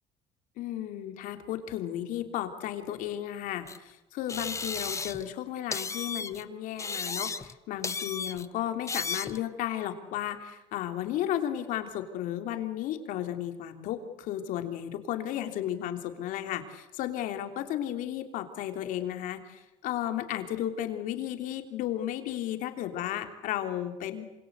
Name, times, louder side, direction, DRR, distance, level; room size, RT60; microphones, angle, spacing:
voice 1, 0.6-24.2, left 11 dB, 75° left, 6 dB, 3.2 m, -34 dB
sound 1, 3.7-3.8 4.3-5.3 5.7-6.4 6.8-7.6 7.8-8.5 8.9-9.4, left 4 dB, 20° left, 1.0 m, -34 dB
27.0 x 26.5 x 8.1 m, 0.97 s
cardioid pair, 105°, 14 cm